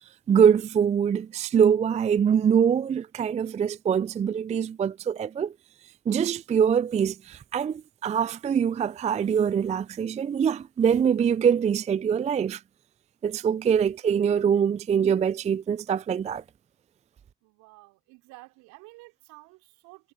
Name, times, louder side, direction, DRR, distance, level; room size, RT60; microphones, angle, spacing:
voice 1, 0.3-5.5 6.1-12.6 13.2-16.4, right 7 dB, 25° right, 0.4 m, -24 dB
voice 2, 17.4-20.1, right 23 dB, 70° right, 3.5 m, -51 dB
figure-of-eight pair, 45°, 30 cm